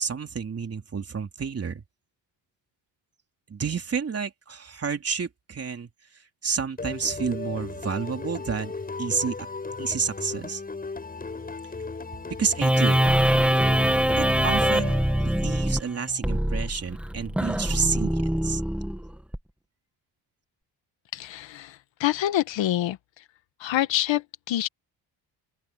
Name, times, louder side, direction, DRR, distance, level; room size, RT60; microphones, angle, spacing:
voice 1, 0.0-1.8 3.5-8.7 9.0-9.4 9.8-10.6 12.4-13.1 14.2-15.0 15.2-18.6, right 6 dB, 30° right, 3.5 m, -30 dB
sound 1, 6.8-15.7, left 3 dB, 20° left, 7.6 m, -36 dB
sound 2, 12.6-19.4, right 1 dB, 5° right, 1.8 m, -23 dB
voice 2, 21.1-23.0 23.6-24.7, left 13 dB, 80° left, 1.9 m, -26 dB
open air
cardioid pair, 140°, 44 cm